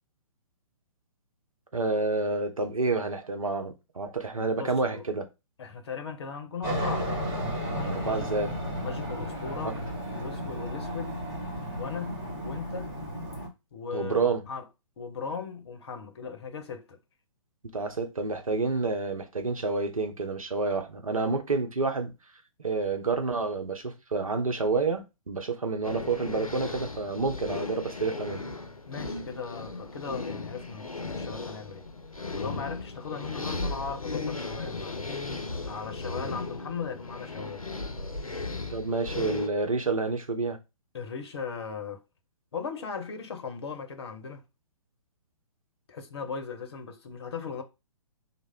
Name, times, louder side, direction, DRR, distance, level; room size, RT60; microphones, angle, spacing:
voice 1, 1.7-5.2 7.9-8.5 9.6-9.7 13.9-14.4 17.7-22.1 22.6-28.4 38.7-40.6, right 3 dB, 75° right, 0.7 m, -29 dB
voice 2, 4.4-5.0 5.6-7.1 7.7-8.4 8.8-9.8 10.1-11.2 11.8-13.0 13.7-14.6 15.0-17.0 28.9-31.9 32.4-35.1 35.6-37.8 40.9-42.0 42.5-44.4 45.9-47.6, left 5 dB, 50° left, 0.7 m, -38 dB
Aircraft, 6.6-13.5, equal, 20° right, 1.6 m, -33 dB
sound 1, 25.8-39.5, left 3 dB, 90° left, 0.5 m, -36 dB
3.1 x 2.1 x 3.5 m
figure-of-eight pair, 125°, 18 cm